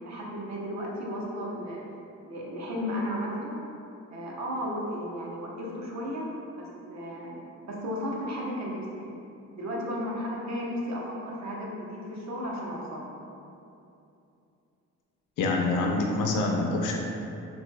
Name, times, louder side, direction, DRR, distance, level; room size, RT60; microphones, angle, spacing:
voice 1, 0.0-1.8 2.2-3.6 4.1-6.3 6.6-9.1 9.5-13.1, equal, 65° right, -2 dB, 0.9 m, -34 dB
voice 2, 15.4-17.0, left 2 dB, 85° left, 0 dB, 0.7 m, -26 dB
5.9 x 3.2 x 2.2 m, 2.7 s
cardioid pair, 90°, 30 cm